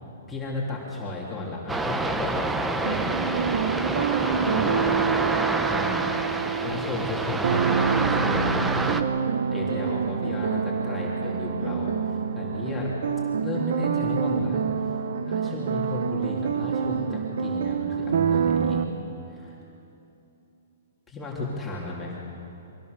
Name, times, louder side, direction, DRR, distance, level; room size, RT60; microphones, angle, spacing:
voice 1, 0.3-3.2 4.2-4.9 5.7-6.1 6.6-8.6 9.5-12.9 13.4-18.8 19.3-19.5 21.1-22.2, left 2 dB, 10° left, -5 dB, 3.4 m, -34 dB
sound 1, 1.7-9.0, right 2 dB, 5° right, 0.8 m, -27 dB
sound 2, 2.8-18.9, right 6 dB, 75° right, 1.1 m, -27 dB
24.0 x 16.5 x 6.9 m, 2.9 s
hypercardioid pair, 150°, 0 cm